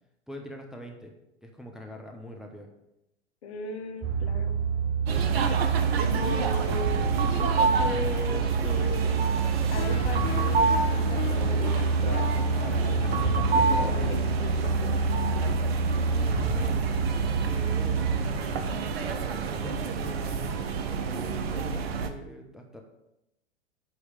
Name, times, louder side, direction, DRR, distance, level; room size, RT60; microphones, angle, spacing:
voice 1, 0.3-1.1 1.4-2.7 15.9-22.8, left 1 dB, ahead, 1 dB, 0.7 m, -44 dB
voice 2, 3.4-4.6 6.1-9.3 9.7-12.3 12.7-15.6, left 3 dB, 65° left, 6 dB, 1.2 m, -38 dB
sound 1, 4.0-18.2, right 4 dB, 30° right, 0.9 m, -27 dB
sound 2, 5.1-22.1, right 5 dB, 60° right, 0.9 m, -29 dB
sound 3, 9.8-16.5, left 7 dB, 45° left, 1.2 m, -41 dB
8.5 x 3.2 x 6.4 m, 0.86 s
figure-of-eight pair, 100°, 35 cm